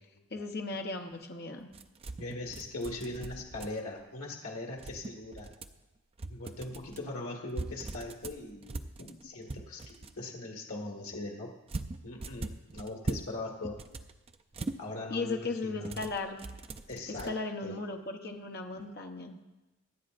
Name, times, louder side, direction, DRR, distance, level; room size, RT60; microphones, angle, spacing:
voice 1, 0.3-1.7 15.1-16.4 17.1-19.4, left 3 dB, 45° left, 3 dB, 0.9 m, -36 dB
sound 1, 1.7-4.0 4.8-5.8 6.2-7.0 7.5-10.2 11.7-13.3 13.6-14.8 15.8-17.3, right 2 dB, 25° right, 0.4 m, -41 dB
voice 2, 2.2-5.5 6.3-11.5 12.0-13.8 14.8-16.0 16.9-17.3 17.6-17.8, left 2 dB, 85° left, -1 dB, 1.8 m, -40 dB
25.0 x 8.5 x 2.6 m, 1.1 s
head